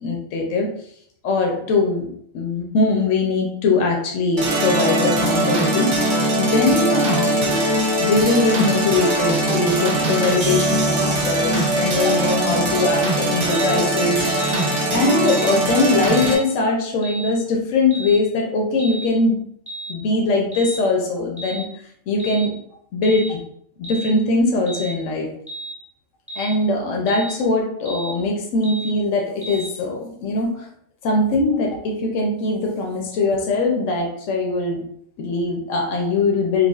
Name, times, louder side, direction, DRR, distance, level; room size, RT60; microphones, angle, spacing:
voice 1, 0.0-0.7 1.2-2.1 2.3-5.9 6.4-7.5 8.0-14.2 14.9-19.4 19.9-21.7 22.1-22.5 22.9-23.4 23.8-25.3 26.4-30.7 31.0-34.8 35.2-36.7, left 3 dB, 75° left, 0 dB, 1.0 m, -21 dB
sound 1, 4.4-16.4, right 1 dB, 50° right, 0.7 m, -21 dB
sound 2, 13.5-13.8 14.4-14.7 15.3-15.5 16.1-16.4 17.0-17.3 17.9-18.2 18.8-19.1 19.7-19.9 20.5-20.8 21.4-21.7 22.2-22.5 23.0-23.3 23.8-24.1 24.7-24.9 25.5-25.8 26.3-26.6 27.1-27.3 27.8-28.1 28.6-28.9 29.4-29.7, right 2 dB, 5° right, 0.9 m, -33 dB
4.7 x 2.2 x 2.3 m, 0.66 s
omnidirectional pair, 1.3 m